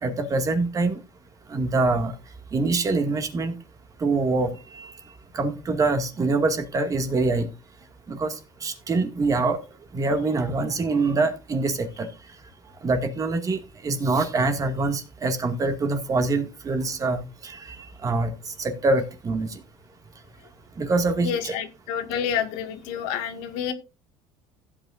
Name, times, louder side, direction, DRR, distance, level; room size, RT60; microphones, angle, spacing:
voice 1, 0.0-1.0 1.5-2.1 2.5-3.6 4.0-4.9 5.3-7.5 8.1-9.6 9.9-12.1 12.8-19.6 20.8-21.5, right 3 dB, 30° right, 2.2 m, -25 dB
voice 2, 21.2-23.7, left 8 dB, 80° left, 2.0 m, -29 dB
15.5 x 8.7 x 2.6 m
supercardioid pair, 115°, 12 cm